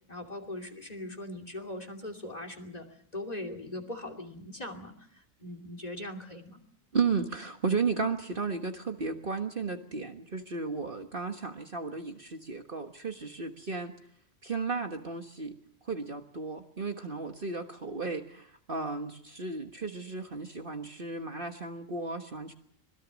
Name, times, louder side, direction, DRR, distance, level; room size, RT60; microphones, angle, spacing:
voice 1, 0.1-2.9 3.1-6.6, left 1 dB, 30° left, 8 dB, 2.9 m, -40 dB
voice 2, 6.9-13.9 14.4-15.6 15.8-22.5, right 4 dB, 40° right, 5 dB, 1.6 m, -34 dB
26.0 x 21.0 x 6.3 m, 0.66 s
omnidirectional pair, 1.4 m